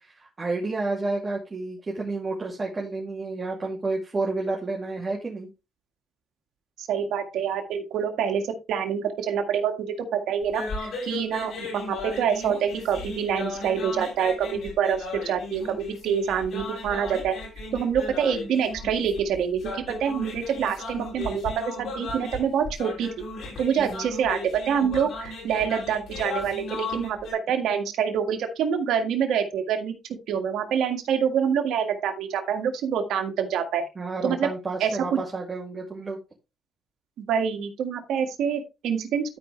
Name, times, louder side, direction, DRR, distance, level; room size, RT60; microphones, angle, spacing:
voice 1, 0.0-5.5 23.8-24.1 34.0-36.2, right 3 dB, 30° right, -2 dB, 2.6 m, -30 dB
voice 2, 6.8-15.0 15.3-17.3 17.7-23.1 23.6-29.9 30.3-33.8 34.2-34.5 34.8-35.2 37.3-39.4, right 7 dB, 80° right, 5 dB, 1.8 m, -26 dB
sound 1, 10.4-27.3, left 2 dB, 70° left, 6.1 m, -36 dB
13.0 x 5.0 x 3.2 m, 0.27 s
cardioid pair, 90°, 0 cm